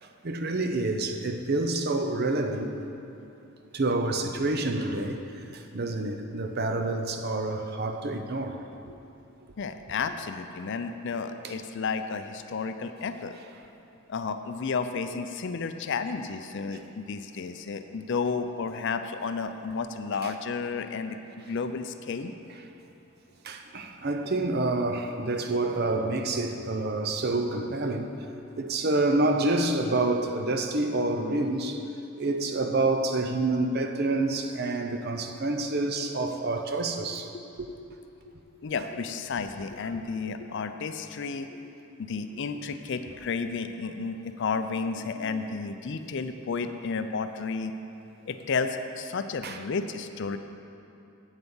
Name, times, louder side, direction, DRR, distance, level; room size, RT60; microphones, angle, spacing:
voice 1, 0.0-2.7 3.7-8.9 11.4-11.6 20.2-20.3 23.4-28.1 28.6-31.8 32.2-37.3 37.6-37.7 44.9-45.4 49.4-49.6, right 2 dB, 45° right, 5 dB, 0.6 m, -28 dB
voice 2, 9.6-13.4 14.1-22.3 38.6-41.5 41.9-47.7 48.3-50.4, left 5 dB, 55° left, 9 dB, 0.4 m, -32 dB
8.2 x 8.0 x 5.5 m, 2.7 s
head